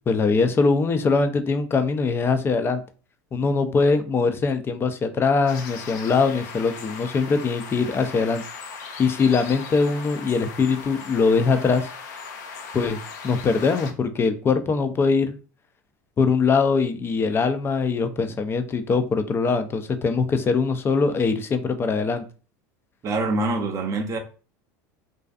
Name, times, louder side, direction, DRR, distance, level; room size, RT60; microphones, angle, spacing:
voice 1, 0.1-2.8 3.3-8.4 9.0-11.9 12.7-13.0 13.2-15.4 16.2-22.2, left 4 dB, 25° left, 0.4 m, -22 dB
sound 1, 5.5-13.9, left 5 dB, 80° left, 0.5 m, -38 dB
voice 2, 23.0-24.2, right 2 dB, 35° right, 0.6 m, -25 dB
2.5 x 2.3 x 2.3 m
hypercardioid pair, 95°, 9 cm